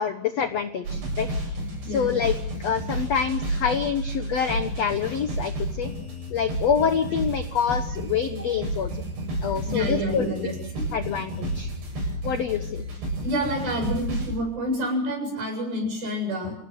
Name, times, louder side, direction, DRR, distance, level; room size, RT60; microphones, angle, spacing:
voice 1, 0.0-1.6 1.9-5.9 6.3-8.9 9.4-10.3 10.9-11.7 12.2-12.9, left 7 dB, 70° left, 8 dB, 1.5 m, -26 dB
sound 1, 0.8-14.3, right 1 dB, 75° right, 10.0 m, -31 dB
voice 2, 1.8-2.2 9.6-10.9 13.2-16.6, equal, 60° right, 3 dB, 9.7 m, -28 dB
28.5 x 17.5 x 8.0 m, 0.71 s
omnidirectional pair, 4.8 m